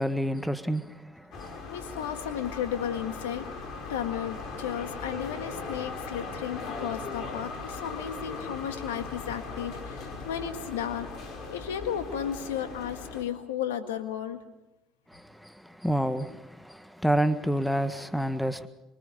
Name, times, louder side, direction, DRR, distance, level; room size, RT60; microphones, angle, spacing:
voice 1, 0.0-1.5 15.1-18.7, right 1 dB, ahead, 1.6 m, -29 dB
sound 1, 1.3-13.2, left 4 dB, 55° left, 5.1 m, -38 dB
voice 2, 1.7-3.5 3.9-11.1 11.5-14.4, left 9 dB, 85° left, 1.7 m, -34 dB
25.0 x 23.0 x 5.2 m
hypercardioid pair, 65°, 0 cm